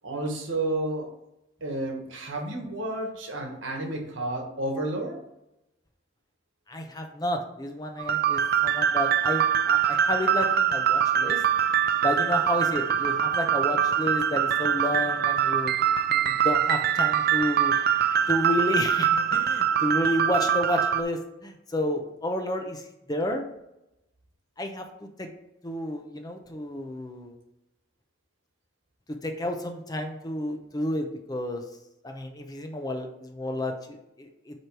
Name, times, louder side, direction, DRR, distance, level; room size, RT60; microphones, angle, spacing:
voice 1, 0.0-1.1 1.6-5.2, right 2 dB, 75° right, 2 dB, 1.3 m, -31 dB
voice 2, 6.7-11.4 12.0-15.7 16.1-17.8 18.3-23.4 24.6-25.3 25.6-27.3 29.1-31.6 32.0-34.6, left 1 dB, 20° left, 4 dB, 0.6 m, -31 dB
sound 1, 8.0-21.0, right 8 dB, 50° right, 0.4 m, -24 dB
7.8 x 3.1 x 4.7 m, 0.88 s
head